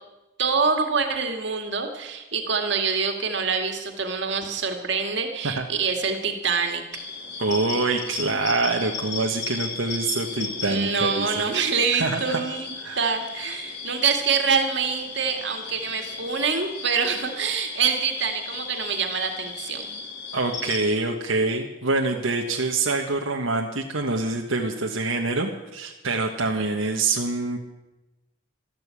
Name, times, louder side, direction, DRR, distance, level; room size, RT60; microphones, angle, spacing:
voice 1, 0.4-6.8 10.6-19.9, right 5 dB, 60° right, 4 dB, 2.1 m, -25 dB
sound 1, 6.9-20.9, left 4 dB, 55° left, 3.4 m, -36 dB
voice 2, 7.4-11.4 12.0-12.4 12.8-13.1 20.3-27.6, right 3 dB, 80° right, 1 dB, 1.4 m, -25 dB
13.5 x 12.5 x 8.4 m, 1.0 s
head